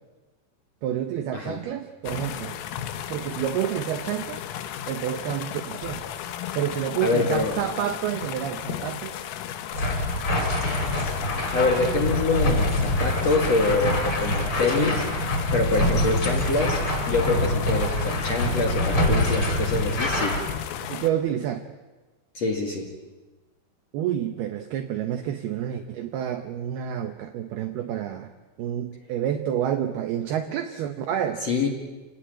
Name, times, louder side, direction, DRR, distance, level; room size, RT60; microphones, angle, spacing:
voice 1, 0.8-2.6 3.1-4.4 4.9-6.1 6.5-9.2 20.8-21.7 23.9-28.3 28.6-31.5, right 10 dB, 75° right, 7 dB, 2.3 m, -29 dB
sound 1, 2.0-21.1, left 10 dB, 85° left, 3.9 m, -34 dB
voice 2, 7.0-7.6 11.5-15.0 15.5-16.8 17.1-20.4 22.3-22.9 31.5-31.7, left 3 dB, 45° left, 1 dB, 2.4 m, -25 dB
sound 2, 9.7-20.4, left 1 dB, 25° left, 5.8 m, -25 dB
28.5 x 19.0 x 8.9 m, 1.2 s
omnidirectional pair, 5.8 m